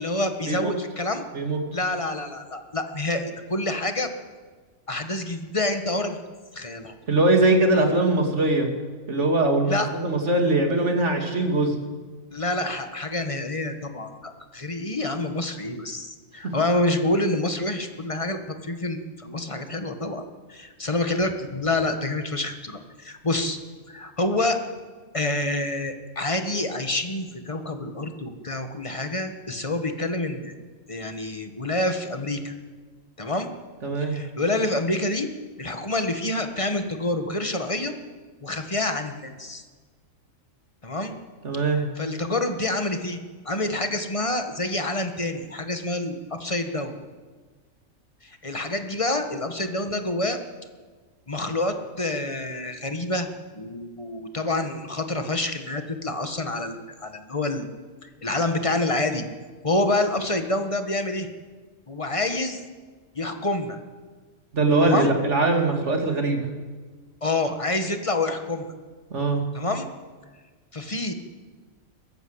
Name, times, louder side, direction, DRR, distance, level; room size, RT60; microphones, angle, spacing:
voice 1, 0.0-1.3 1.7-4.1 4.9-6.2 6.5-6.9 9.7-9.9 12.3-23.6 23.9-24.6 25.1-30.5 30.9-32.5 33.2-33.5 34.1-35.3 35.6-37.9 38.4-39.6 40.8-41.2 42.0-43.2 43.5-46.9 48.2-50.4 51.3-53.3 53.6-56.8 57.0-57.7 58.2-59.2 59.6-61.3 61.9-62.6 63.2-63.8 64.8-65.1 67.2-68.7 69.5-69.9 70.7-71.1, left 2 dB, 25° left, 7 dB, 1.7 m, -27 dB
voice 2, 7.1-8.7 9.1-11.7 16.4-16.5 33.8-34.2 41.4-41.8 64.5-66.5 69.1-69.4, right 2 dB, 55° right, 3 dB, 3.0 m, -21 dB
22.0 x 14.5 x 8.1 m, 1.4 s
omnidirectional pair, 1.4 m